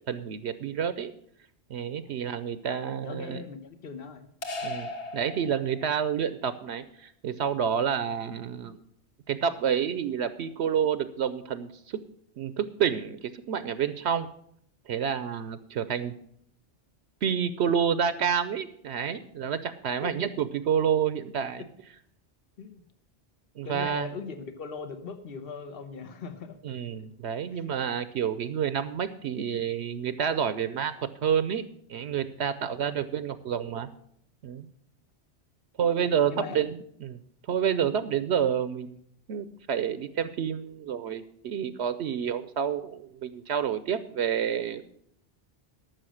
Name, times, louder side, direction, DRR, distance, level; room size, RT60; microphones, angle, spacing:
voice 1, 0.1-1.1 1.7-3.4 4.6-8.8 9.3-12.0 12.4-14.3 14.9-16.2 17.2-21.7 23.6-24.1 26.6-30.9 31.2-31.6 31.9-33.9 34.4-34.7 35.8-37.2 37.5-38.9 39.3-44.8, right 8 dB, 75° right, 13 dB, 0.9 m, -29 dB
voice 2, 3.0-4.3 20.0-20.2 22.6-22.8 23.6-26.6 27.5-27.6 36.3-36.6, left 5 dB, 55° left, 9 dB, 1.2 m, -39 dB
sound 1, 4.4-6.1, left 2 dB, 75° left, 1.6 m, -37 dB
13.5 x 6.3 x 6.3 m, 0.68 s
omnidirectional pair, 1.1 m